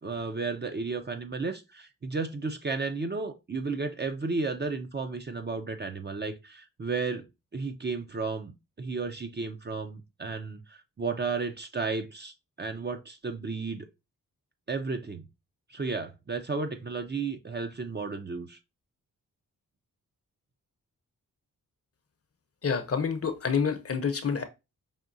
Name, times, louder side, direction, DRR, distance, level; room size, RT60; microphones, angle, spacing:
voice 1, 0.0-7.3 7.5-13.9 14.7-15.2 15.7-18.6, right 4 dB, 30° right, 0.6 m, -33 dB
voice 2, 22.6-24.4, left 6 dB, 40° left, 0.7 m, -28 dB
5.1 x 2.6 x 2.6 m
cardioid pair, 55°, 35 cm